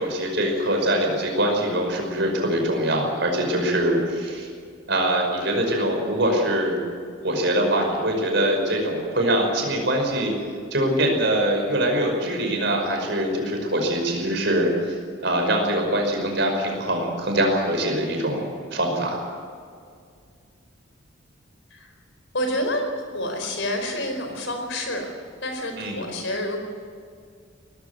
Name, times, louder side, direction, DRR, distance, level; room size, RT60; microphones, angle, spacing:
voice 1, 0.0-4.5 4.9-6.8 7.2-10.3 10.7-15.0 15.2-19.2 25.8-26.0, right 1 dB, 55° right, 2 dB, 5.5 m, -23 dB
voice 2, 22.3-22.8 23.1-25.1 25.4-26.6, left 1 dB, 65° left, 4 dB, 4.6 m, -28 dB
19.0 x 15.5 x 9.7 m, 2.2 s
head